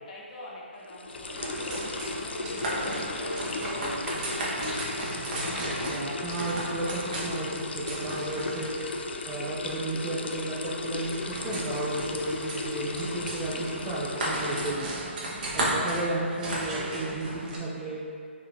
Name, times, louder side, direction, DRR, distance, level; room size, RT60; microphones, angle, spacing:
voice 1, 0.0-4.4, left 1 dB, 35° left, -4 dB, 0.7 m, -44 dB
sound 1, 0.8-14.7, left 3 dB, 60° left, 0.3 m, -36 dB
sound 2, 1.1-17.6, right 1 dB, 40° right, 0.7 m, -35 dB
voice 2, 5.6-8.7 9.3-14.9 15.5-18.0, right 2 dB, 10° right, -8 dB, 0.4 m, -33 dB
4.5 x 3.1 x 2.4 m, 2.2 s
figure-of-eight pair, 140°, 7 cm